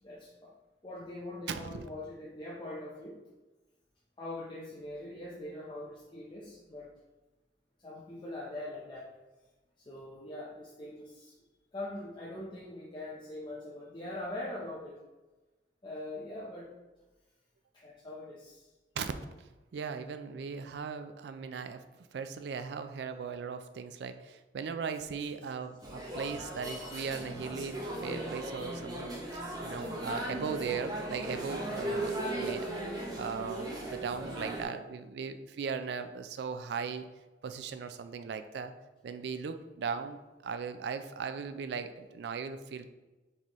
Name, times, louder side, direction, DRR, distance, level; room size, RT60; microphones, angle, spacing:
voice 1, 0.0-0.5 0.8-3.2 4.2-6.9 7.8-9.1 9.8-11.3 11.7-15.0 15.8-16.7 17.7-18.7 19.9-20.1 25.4-25.5 25.8-26.2 32.4-32.7, left 1 dB, 25° left, -5 dB, 0.5 m, -42 dB
voice 2, 1.5-1.8 19.0-19.1 19.7-21.8 22.1-32.7 33.2-37.0 37.4-38.7 39.0-42.9, right 6 dB, 70° right, 9 dB, 0.3 m, -38 dB
sound 1, 25.8-34.6, right 1 dB, 20° right, 0.7 m, -37 dB
4.1 x 3.7 x 3.0 m, 1.1 s
head